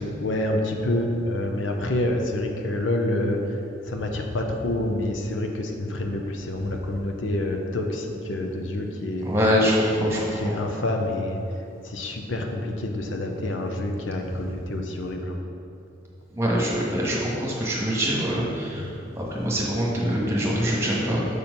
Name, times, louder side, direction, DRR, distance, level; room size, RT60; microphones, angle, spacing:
voice 1, 0.2-9.3 10.0-11.4 11.8-15.4 18.7-18.9, left 1 dB, 80° left, 3 dB, 0.8 m, -27 dB
voice 2, 9.2-10.6 16.3-21.4, equal, 15° right, -4 dB, 1.5 m, -24 dB
6.8 x 4.4 x 5.2 m, 2.7 s
head